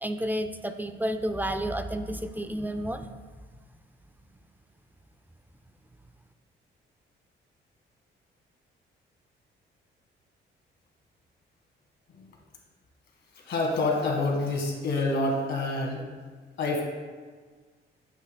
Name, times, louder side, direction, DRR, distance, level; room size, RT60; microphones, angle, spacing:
voice 1, 0.0-3.2, right 1 dB, 10° right, 8 dB, 0.4 m, -31 dB
voice 2, 13.4-16.1 16.6-16.8, left 2 dB, 60° left, 1 dB, 1.7 m, -27 dB
8.4 x 8.2 x 2.2 m, 1.5 s
cardioid pair, 90°, 20 cm